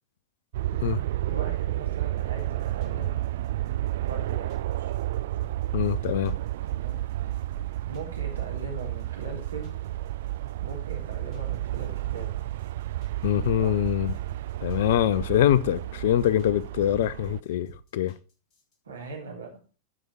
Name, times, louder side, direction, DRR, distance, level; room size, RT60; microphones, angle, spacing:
sound 1, 0.5-17.4, right 14 dB, 55° right, 0.3 m, -31 dB
voice 1, 0.9-3.2 4.0-4.9 6.6-7.0 7.8-9.8 10.6-12.3 13.6-13.8 18.9-19.6, right 3 dB, 70° right, 3.3 m, -40 dB
sound 2, 2.2-18.7, right 1 dB, 35° left, 4.5 m, -52 dB
voice 2, 5.7-6.3 13.2-14.1 14.6-17.7 17.9-18.1, left 11 dB, 55° left, 0.6 m, -24 dB
13.0 x 5.0 x 4.4 m
figure-of-eight pair, 90°, 0 cm